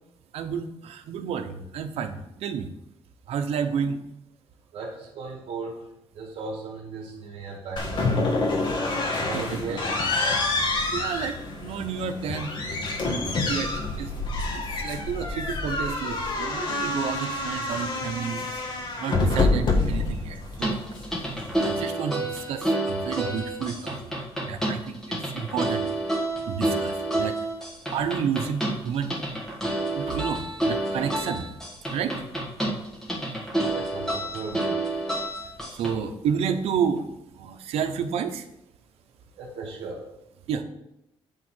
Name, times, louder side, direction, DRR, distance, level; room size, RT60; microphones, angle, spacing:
voice 1, 0.3-2.7 3.3-4.0 9.3-9.8 10.9-12.5 13.0-13.7 14.0-14.1 14.5-18.4 19.0-20.8 21.6-24.1 24.5-27.4 27.9-29.6 29.9-31.5 31.9-32.2 35.7-37.1 37.4-38.5 40.5-40.6, right 7 dB, 85° right, 7 dB, 0.9 m, -31 dB
voice 2, 4.7-5.8 6.1-8.4 9.2-9.9 33.7-34.8 39.3-40.0, right 3 dB, 70° right, -4 dB, 2.0 m, -37 dB
sound 1, 7.8-21.8, left 2 dB, 50° left, 1.5 m, -27 dB
sound 2, 20.5-35.9, right 1 dB, 5° left, 1.8 m, -29 dB
9.2 x 3.7 x 6.2 m, 0.83 s
cardioid pair, 130°, 10 cm